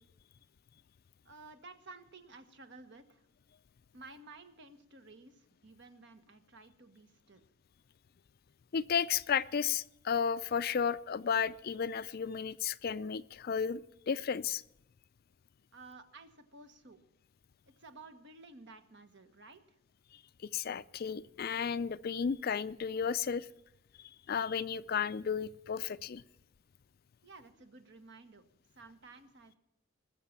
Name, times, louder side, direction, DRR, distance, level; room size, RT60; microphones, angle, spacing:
voice 1, 1.2-3.2 3.9-7.4 15.7-17.0 17.6-19.8 27.2-28.5 28.7-29.6, right 3 dB, 60° right, 8 dB, 1.4 m, -54 dB
voice 2, 8.7-13.8 14.1-14.6 20.5-23.5 24.3-26.2, left 7 dB, 50° left, 16 dB, 0.4 m, -33 dB
19.5 x 6.8 x 7.2 m, 0.86 s
head